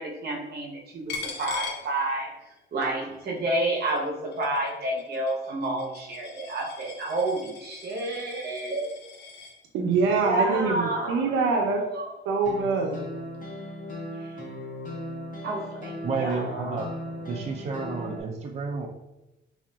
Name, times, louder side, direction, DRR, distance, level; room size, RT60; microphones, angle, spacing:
voice 1, 0.0-8.9 10.2-12.1 14.2-14.3 15.4-16.9, right 2 dB, 55° right, -1 dB, 0.9 m, -30 dB
Coin (dropping), 1.1-2.6 2.9-9.6, left 5 dB, 60° left, 0.5 m, -42 dB
voice 2, 9.7-11.8 12.3-13.0, right 4 dB, 90° right, 2 dB, 0.5 m, -24 dB
sound 1, 12.4-18.2, left 1 dB, 45° left, 0.9 m, -37 dB
voice 3, 16.0-16.9 17.3-18.9, right 4 dB, 35° right, 1 dB, 0.4 m, -31 dB
3.7 x 2.4 x 2.2 m, 0.94 s
cardioid pair, 90°, 20 cm